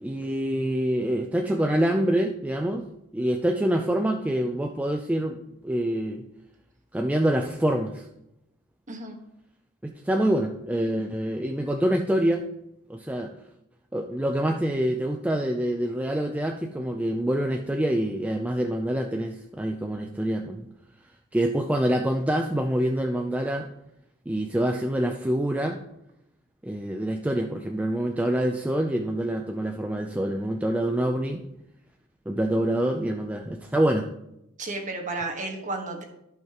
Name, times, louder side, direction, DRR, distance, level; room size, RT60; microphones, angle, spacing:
voice 1, 0.0-2.9 3.1-5.4 5.6-6.2 6.9-8.1 9.8-12.4 12.9-13.3 13.9-20.7 21.3-23.7 24.3-25.8 26.6-31.4 32.3-34.1, right 1 dB, 5° right, 3 dB, 0.4 m, -26 dB
voice 2, 8.9-9.2 34.6-36.0, right 2 dB, 35° right, 2 dB, 1.4 m, -32 dB
14.0 x 5.8 x 2.9 m, 0.84 s
head